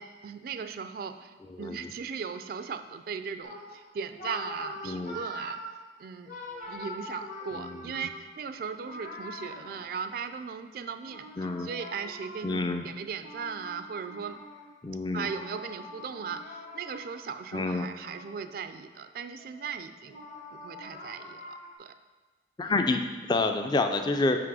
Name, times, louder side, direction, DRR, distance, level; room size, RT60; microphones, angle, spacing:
voice 1, 0.0-5.6 6.0-6.3 6.7-11.3 11.6-14.4 15.1-20.2 20.5-21.9 22.6-22.7, right 6 dB, 55° right, 9 dB, 0.3 m, -38 dB
voice 2, 1.5-1.9 4.8-5.2 7.5-7.8 11.4-11.7 12.4-12.9 14.8-15.3 17.5-17.9 22.6-23.0 23.3-24.4, left 3 dB, 25° left, 6 dB, 0.4 m, -28 dB
sound 1, 3.4-10.4 11.0-17.4 17.8-19.0 19.4-21.7, left 1 dB, 45° left, 1.1 m, -44 dB
5.9 x 5.3 x 4.8 m, 1.3 s
head